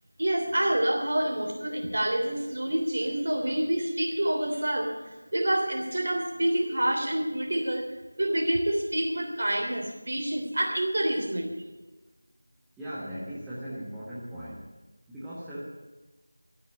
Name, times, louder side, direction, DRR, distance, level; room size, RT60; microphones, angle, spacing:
voice 1, 0.2-7.8 8.2-11.5, right 1 dB, 45° right, 1 dB, 3.3 m, -27 dB
voice 2, 12.8-14.7 15.1-15.7, equal, 5° right, -11 dB, 1.2 m, -38 dB
13.0 x 9.5 x 8.5 m, 1.2 s
figure-of-eight pair, 170°, 0 cm